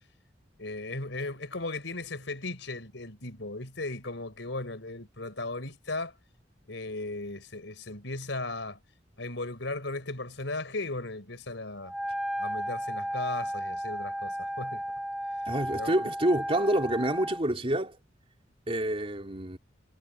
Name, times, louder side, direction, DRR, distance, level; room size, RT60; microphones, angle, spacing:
voice 1, 0.6-6.1 6.7-8.8 9.2-11.9 12.4-14.8 15.8-16.1, left 2 dB, 75° left, 4.9 m, -36 dB
Wind instrument woodwind instrument, 11.8-17.5, equal, ahead, 0.5 m, -34 dB
voice 2, 15.5-18.0 18.7-19.6, right 1 dB, 30° right, 3.7 m, -28 dB
head